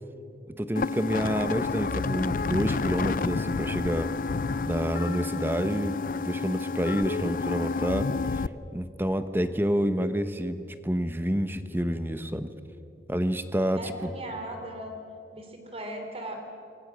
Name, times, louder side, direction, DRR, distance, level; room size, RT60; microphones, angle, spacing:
voice 1, 0.6-4.1 4.6-8.4 8.7-12.5 13.1-14.1, equal, 10° right, 10 dB, 0.9 m, -28 dB
sound 1, 0.8-8.5, left 4 dB, 45° left, 0.4 m, -30 dB
voice 2, 13.8-14.9 15.3-16.5, right 1 dB, 30° right, 4 dB, 3.4 m, -38 dB
26.5 x 23.5 x 6.3 m, 2.7 s
head